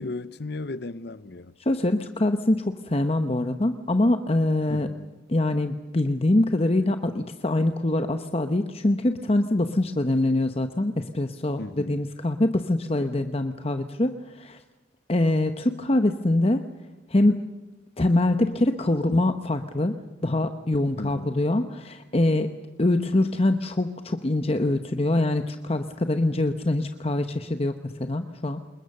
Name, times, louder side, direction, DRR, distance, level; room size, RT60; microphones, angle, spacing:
voice 1, 0.0-1.5 4.7-5.1 11.6-12.0 21.0-21.4, left 2 dB, 60° left, 0.8 m, -35 dB
voice 2, 1.6-4.9 5.3-14.6 15.1-16.6 17.1-17.4 18.0-20.0 20.2-22.5 22.8-28.6, left 1 dB, 30° left, 0.9 m, -24 dB
28.0 x 21.5 x 6.6 m
head